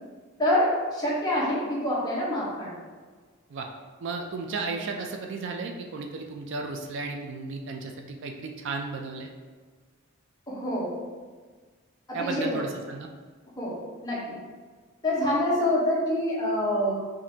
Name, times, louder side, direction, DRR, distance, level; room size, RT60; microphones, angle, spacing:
voice 1, 0.4-2.7 10.5-10.9 12.1-12.6 13.6-14.3 15.0-16.9, left 1 dB, 20° left, -6 dB, 1.0 m, -26 dB
voice 2, 4.0-9.3 12.1-13.1, right 4 dB, 60° right, 3 dB, 0.4 m, -34 dB
5.0 x 2.6 x 2.7 m, 1.5 s
head